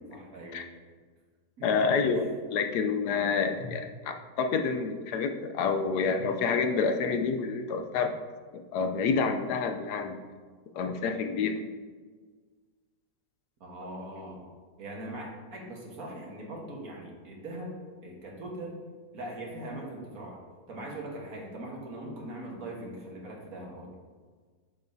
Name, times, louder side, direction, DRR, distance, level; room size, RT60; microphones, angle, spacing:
voice 1, 0.1-0.6 1.6-2.3 13.6-14.4 14.8-17.8 18.0-18.8 19.1-20.4 20.7-23.9, right 1 dB, 60° right, -1 dB, 1.7 m, -41 dB
voice 2, 1.6-8.1 8.5-10.2 10.7-11.6, left 5 dB, 75° left, 6 dB, 1.1 m, -28 dB
9.3 x 6.8 x 2.7 m, 1.5 s
omnidirectional pair, 1.8 m